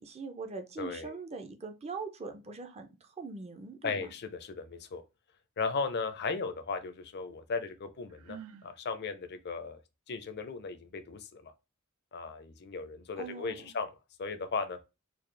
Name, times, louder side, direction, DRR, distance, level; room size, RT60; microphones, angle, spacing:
voice 1, 0.0-4.1 13.2-13.7, right 4 dB, 30° right, 0.5 m, -42 dB
voice 2, 0.8-1.1 3.8-5.0 5.6-9.8 10.1-11.5 12.1-13.9 14.2-14.8, left 4 dB, 50° left, 0.5 m, -36 dB
Sigh, 8.1-8.7, right 8 dB, 90° right, 0.4 m, -47 dB
4.2 x 2.4 x 3.2 m
head